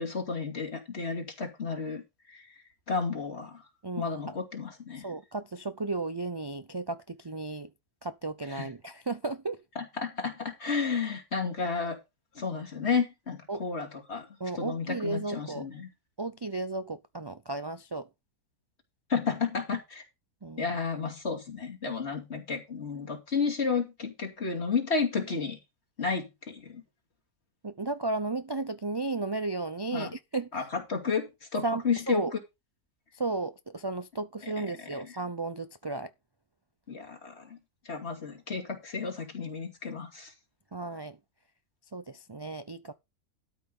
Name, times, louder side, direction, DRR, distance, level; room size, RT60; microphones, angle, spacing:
voice 1, 0.0-2.5 2.9-3.6 4.0-5.1 8.5-8.7 9.8-12.0 12.3-14.3 14.6-15.9 19.1-20.0 20.6-25.6 26.0-26.8 29.9-30.1 30.5-32.2 34.4-34.5 34.9-35.0 36.9-37.6 37.8-40.3, left 5 dB, 45° left, 2.9 m, -32 dB
voice 2, 3.8-4.4 5.0-7.7 8.0-9.6 13.5-13.6 14.4-15.7 16.2-18.1 20.4-20.8 27.6-30.6 31.6-32.3 33.1-36.1 40.7-41.2 41.9-42.9, right 3 dB, 40° right, 0.3 m, -34 dB
12.5 x 5.7 x 5.4 m
omnidirectional pair, 1.6 m